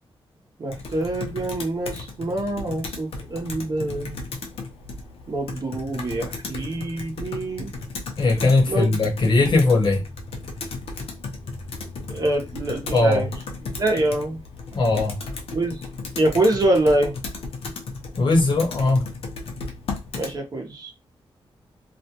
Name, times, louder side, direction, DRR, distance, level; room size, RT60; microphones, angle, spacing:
voice 1, 0.6-4.2 5.3-7.7 8.7-9.0 12.1-13.3 13.8-14.4 15.5-15.8 16.1-17.1 20.1-20.9, right 1 dB, 40° right, 0.8 m, -25 dB
Computer keyboard, 0.7-20.4, left 3 dB, 80° left, 0.6 m, -35 dB
voice 2, 8.2-10.0 12.9-13.3 14.7-15.2 18.2-19.1, left 3 dB, 50° left, 0.8 m, -19 dB
2.5 x 2.1 x 2.8 m
wide cardioid pair, 140°, 10 cm